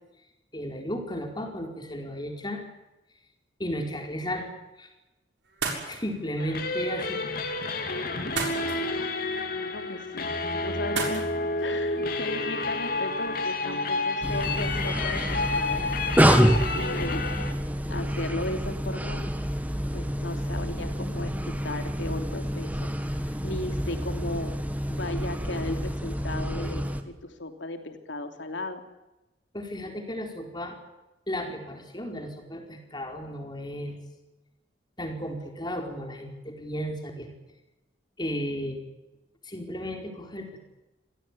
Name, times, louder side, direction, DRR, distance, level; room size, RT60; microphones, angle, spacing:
voice 1, 0.5-2.6 3.6-4.5 4.8-4.9 5.9-7.2 29.5-30.8 31.3-34.0 35.0-37.3 38.2-38.8 39.4-40.7, equal, 25° left, 3 dB, 4.8 m, -34 dB
sound 1, 5.4-13.9, right 4 dB, 70° right, 7.0 m, -39 dB
sound 2, 6.4-17.5, left 3 dB, 50° left, 3.1 m, -30 dB
voice 2, 8.4-9.1 9.5-15.9 16.7-17.3 17.9-19.3 19.9-24.6 24.9-28.8, left 2 dB, 80° left, 7 dB, 3.2 m, -36 dB
sound 3, 14.2-27.0, equal, 10° right, 1.8 m, -27 dB
26.5 x 17.5 x 10.0 m, 1.0 s
head